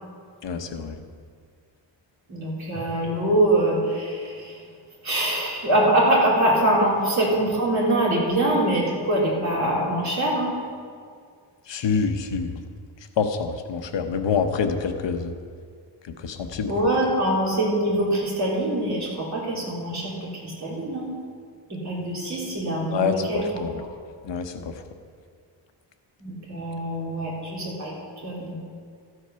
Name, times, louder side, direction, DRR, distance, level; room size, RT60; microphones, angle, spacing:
voice 1, 0.4-1.0 11.7-12.5 13.2-15.3 16.0-16.7 22.9-23.8 24.2-24.7, left 5 dB, 75° left, 7 dB, 0.9 m, -26 dB
voice 2, 2.3-4.6 5.0-10.5 16.7-21.1 21.7-23.5 26.2-27.9 28.2-28.5, right 1 dB, 40° right, -5 dB, 3.4 m, -24 dB
13.0 x 8.0 x 5.6 m, 2.1 s
wide cardioid pair, 175°, 45 cm